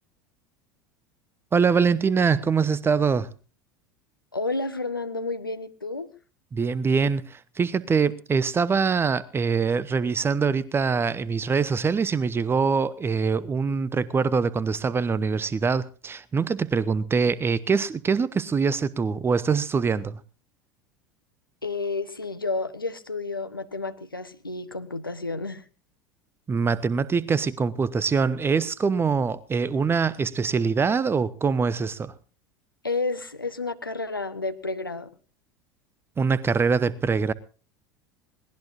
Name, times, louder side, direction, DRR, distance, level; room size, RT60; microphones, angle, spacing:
voice 1, 1.5-3.3 6.5-20.2 26.5-32.1 36.2-37.3, right 5 dB, 20° right, 0.9 m, -24 dB
voice 2, 4.3-6.1 21.6-25.6 32.8-35.1, left 3 dB, 90° left, 1.3 m, -31 dB
22.0 x 19.0 x 2.6 m
figure-of-eight pair, 75°, 11 cm